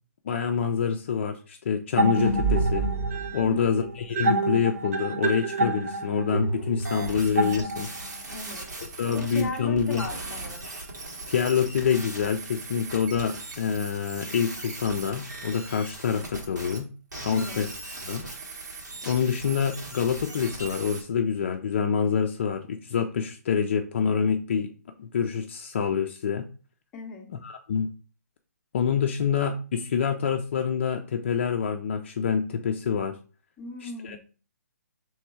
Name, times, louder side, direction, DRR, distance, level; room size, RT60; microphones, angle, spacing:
voice 1, 0.3-2.9 3.3-7.9 9.0-10.0 11.3-16.9 17.2-17.7 18.0-18.2 19.0-24.7 25.0-26.5 27.4-27.9 28.7-33.2 33.8-34.2, left 7 dB, 45° left, 5 dB, 0.4 m, -26 dB
sound 1, 2.0-8.1, right 3 dB, 55° right, 1.0 m, -27 dB
sound 2, 6.8-16.8 17.1-21.0, right 2 dB, 90° right, 1.8 m, -39 dB
voice 2, 8.3-8.7 9.0-10.7 17.3-17.6 26.9-27.3 33.6-34.2, left 3 dB, 10° left, 0 dB, 0.7 m, -38 dB
3.3 x 3.1 x 4.5 m, 0.37 s
hypercardioid pair, 160°, 9 cm